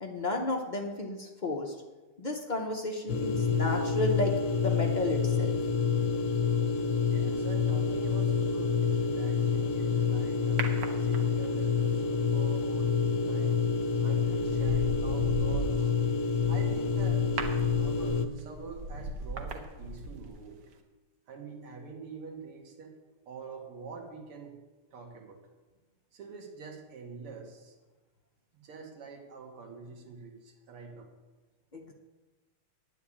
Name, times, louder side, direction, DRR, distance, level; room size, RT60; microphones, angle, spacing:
voice 1, 0.0-1.7 2.2-5.6 31.7-31.9, left 2 dB, 80° left, 0 dB, 0.4 m, -32 dB
sound 1, 3.1-18.3, left 6 dB, 60° left, 0.8 m, -28 dB
voice 2, 7.1-10.7 11.0-13.6 14.0-15.9 16.5-17.2 17.7-20.6 21.3-23.0 23.3-24.6 24.9-25.4 26.1-27.8 28.6-31.1, right 5 dB, 85° right, 3 dB, 2.5 m, -45 dB
sound 2, 10.6-11.6 13.5-13.8 14.2-20.4 20.7-20.8, right 1 dB, 60° right, 1.6 m, -37 dB
10.0 x 5.8 x 8.6 m, 1.2 s
omnidirectional pair, 2.4 m